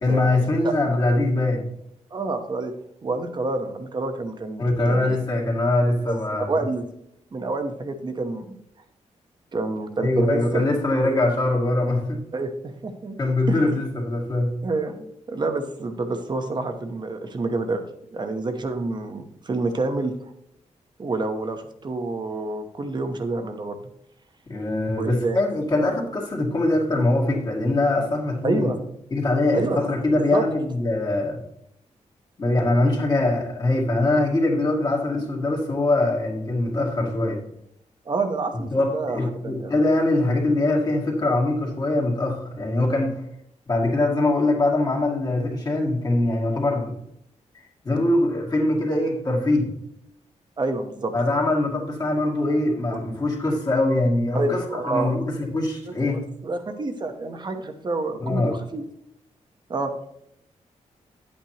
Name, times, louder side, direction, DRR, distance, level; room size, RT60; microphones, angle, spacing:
voice 1, 0.0-1.7 4.6-6.5 10.0-12.2 13.2-14.5 24.5-28.7 29.1-31.4 32.4-37.4 38.7-43.2 43.7-46.9 47.8-49.7 51.1-56.2 58.2-58.6, left 2 dB, 35° left, -2 dB, 2.3 m, -22 dB
voice 2, 2.1-2.7 3.0-5.2 6.1-6.9 7.3-8.6 9.5-10.7 11.0-11.2 12.3-13.2 13.5-13.6 14.6-17.8 18.1-20.1 21.0-23.8 25.0-25.4 28.4-28.8 29.5-29.8 30.3-30.4 38.0-39.7 50.6-51.1 52.9-53.0 54.3-55.1 55.9-58.8 59.7-59.9, right 3 dB, 35° right, 6 dB, 1.0 m, -28 dB
10.5 x 8.6 x 3.0 m, 0.75 s
wide cardioid pair, 150°, 12 cm